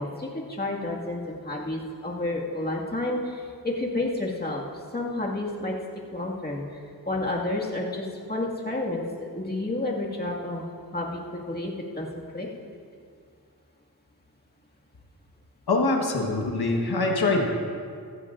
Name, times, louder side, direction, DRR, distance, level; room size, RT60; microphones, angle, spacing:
voice 1, 0.0-5.8 6.1-12.5, left 2 dB, 25° left, -3 dB, 2.0 m, -31 dB
voice 2, 15.7-17.5, left 3 dB, 85° left, 1 dB, 1.4 m, -24 dB
14.5 x 14.5 x 2.6 m, 2.3 s
wide cardioid pair, 60°, 37 cm